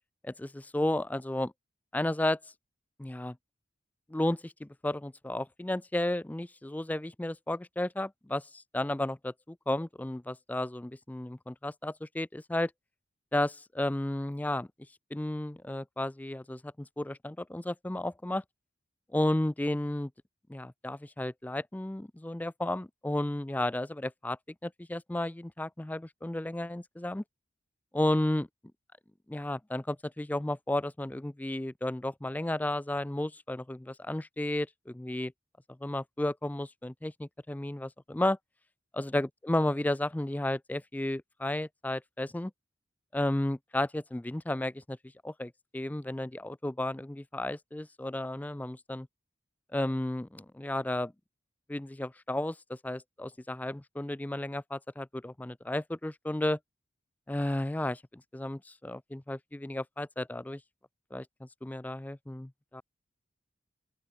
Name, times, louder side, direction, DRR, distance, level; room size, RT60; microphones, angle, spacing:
voice 1, 0.2-1.5 1.9-2.4 3.0-3.4 4.1-12.7 13.3-14.7 15.1-18.4 19.1-20.1 20.5-27.2 27.9-28.5 29.3-35.3 35.8-38.4 38.9-42.5 43.1-45.0 45.2-49.1 49.7-51.1 51.7-56.6 57.3-60.6 61.1-62.8, left 1 dB, 10° left, 0.3 m, -33 dB
open air
head